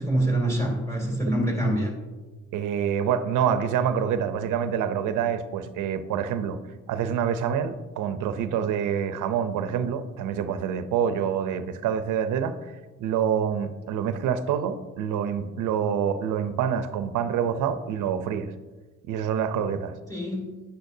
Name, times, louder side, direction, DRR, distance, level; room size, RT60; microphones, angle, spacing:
voice 1, 0.0-1.9 20.1-20.6, right 1 dB, 10° left, -1 dB, 3.3 m, -25 dB
voice 2, 2.5-6.6 6.9-12.6 13.0-18.5 19.0-19.9, right 8 dB, 90° right, 11 dB, 0.7 m, -26 dB
10.5 x 9.7 x 2.7 m, 1.3 s
cardioid pair, 90°, 30 cm